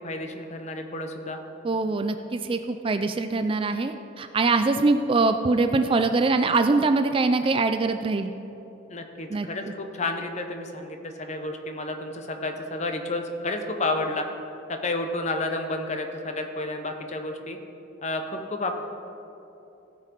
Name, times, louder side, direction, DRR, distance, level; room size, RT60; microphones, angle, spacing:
voice 1, 0.0-1.4 8.9-14.2 14.7-17.6 18.0-18.8, left 2 dB, 35° left, 5 dB, 0.9 m, -31 dB
voice 2, 1.6-8.3 9.3-9.5, right 3 dB, 30° right, 8 dB, 0.3 m, -23 dB
16.5 x 5.8 x 4.6 m, 3.0 s
head